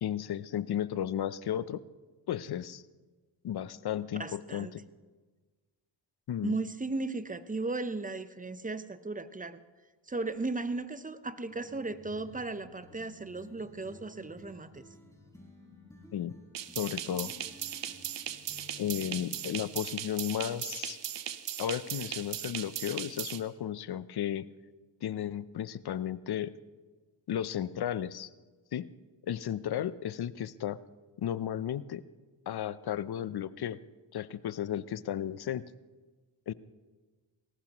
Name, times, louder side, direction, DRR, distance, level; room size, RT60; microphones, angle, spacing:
voice 1, 0.0-1.8 2.3-2.8 3.4-4.8 6.3-6.5 16.1-16.4 16.8-17.3 18.8-21.0 21.6-24.5 25.0-26.5 27.3-28.3 28.7-28.9 29.3-30.8 31.2-32.0 32.5-33.8 34.1-35.6 36.5-36.6, left 10 dB, 55° left, 17 dB, 0.7 m, -34 dB
voice 2, 4.2-4.7 6.4-9.6 10.1-14.8, right 3 dB, 15° right, 12 dB, 0.8 m, -36 dB
sound 1, 11.5-19.6, left 2 dB, 5° left, 4.8 m, -54 dB
sound 2, 16.5-23.4, right 10 dB, 65° right, 1.0 m, -38 dB
20.0 x 18.0 x 3.0 m, 1.3 s
cardioid pair, 70°, 46 cm